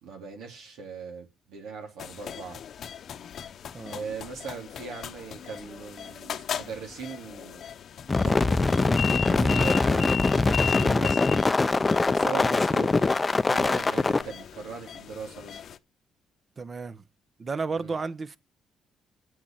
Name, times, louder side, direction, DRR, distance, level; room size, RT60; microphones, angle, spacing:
voice 1, 0.0-2.6 3.9-7.6 8.2-11.2 12.1-13.1 13.5-15.6 17.7-18.0, right 5 dB, 90° right, 3.5 m, -39 dB
sound 1, 2.0-15.8, left 9 dB, 65° left, 0.8 m, -37 dB
sound 2, 8.1-14.2, left 3 dB, 25° left, 0.5 m, -23 dB
voice 2, 16.6-17.0 17.4-18.4, right 4 dB, 35° right, 0.9 m, -32 dB
8.2 x 8.1 x 7.5 m
cardioid pair, 90°, 0 cm